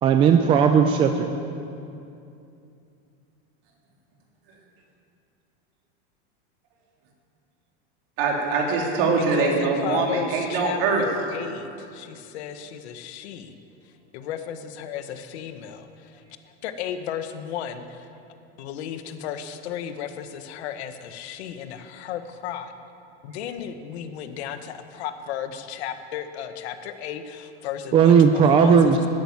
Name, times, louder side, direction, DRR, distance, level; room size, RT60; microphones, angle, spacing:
voice 1, 0.0-1.3 27.9-29.0, right 6 dB, 15° right, 6 dB, 0.3 m, -16 dB
voice 2, 8.2-11.0, right 4 dB, 55° right, -1 dB, 3.3 m, -23 dB
voice 3, 9.3-13.5 13.8-16.2 16.6-18.1 18.6-22.7 23.2-29.1, left 9 dB, 75° left, 9 dB, 1.3 m, -34 dB
13.0 x 9.1 x 9.5 m, 2.6 s
supercardioid pair, 165°, 33 cm